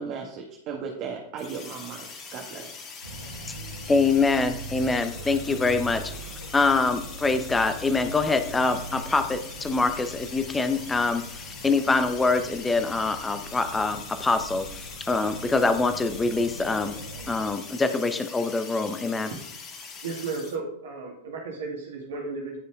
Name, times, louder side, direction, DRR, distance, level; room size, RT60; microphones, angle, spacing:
voice 1, 0.0-2.9, right 5 dB, 40° right, 0 dB, 1.6 m, -36 dB
sound 1, 1.4-20.6, left 5 dB, 35° left, 2.1 m, -42 dB
sound 2, 3.0-17.4, right 2 dB, 80° right, 2.3 m, -42 dB
voice 2, 3.9-6.0 6.5-11.2 11.6-17.0 17.3-19.3, left 3 dB, 10° left, 9 dB, 1.0 m, -24 dB
voice 3, 20.0-22.6, right 4 dB, 60° right, -1 dB, 2.6 m, -34 dB
14.0 x 5.4 x 3.6 m, 0.72 s
figure-of-eight pair, 90°, 0 cm